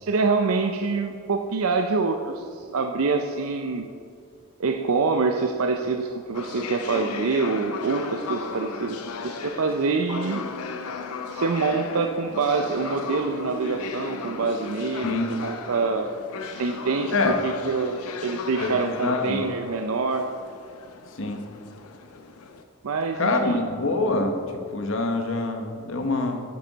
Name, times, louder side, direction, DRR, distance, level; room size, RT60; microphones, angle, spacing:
voice 1, 0.0-3.9 4.6-10.4 11.3-16.1 16.6-17.1 17.4-20.3 22.8-23.6, right 4 dB, 70° right, 5 dB, 0.5 m, -26 dB
sound 1, 6.3-22.6, left 4 dB, 85° left, 0.7 m, -36 dB
voice 2, 18.6-19.5 21.2-21.4 23.2-24.4 24.7-26.4, left 3 dB, 60° left, 4 dB, 1.0 m, -25 dB
10.5 x 7.8 x 4.0 m, 2.2 s
head